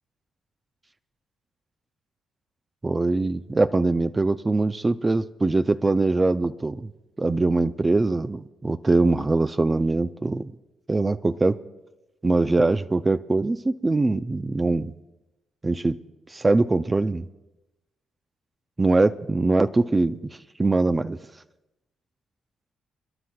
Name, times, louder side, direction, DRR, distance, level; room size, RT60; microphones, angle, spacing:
voice 1, 2.8-6.9 7.2-10.5 10.9-11.6 12.2-14.9 15.6-16.0 16.3-17.3 18.8-20.2 20.6-21.2, right 2 dB, 20° right, 9 dB, 0.4 m, -22 dB
29.5 x 11.5 x 2.3 m, 0.99 s
cardioid pair, 90°, 0 cm